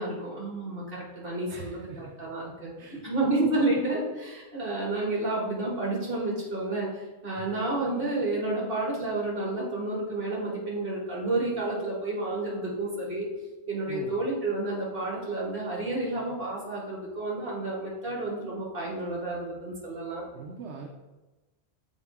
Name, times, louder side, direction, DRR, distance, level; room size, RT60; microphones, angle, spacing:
voice 1, 0.0-2.7 3.0-13.3 13.7-20.3, right 2 dB, 50° right, -4 dB, 1.9 m, -30 dB
voice 2, 1.5-2.1 2.8-3.0 7.4-7.5 13.9-14.1 20.3-20.9, right 4 dB, 70° right, 1 dB, 0.9 m, -41 dB
7.2 x 4.2 x 3.5 m, 1.1 s
omnidirectional pair, 1.2 m